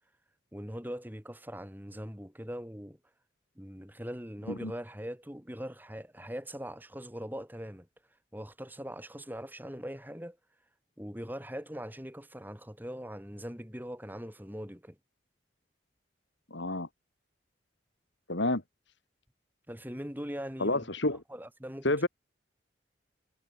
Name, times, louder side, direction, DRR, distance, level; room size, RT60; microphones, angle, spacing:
voice 1, 0.5-3.0 3.6-7.9 8.3-10.4 11.0-15.0 19.7-20.9 21.3-21.9, equal, 10° right, 6.3 m, -41 dB
voice 2, 16.5-16.9 18.3-18.6 20.6-21.2 21.8-22.1, left 2 dB, 75° left, 3.4 m, -29 dB
head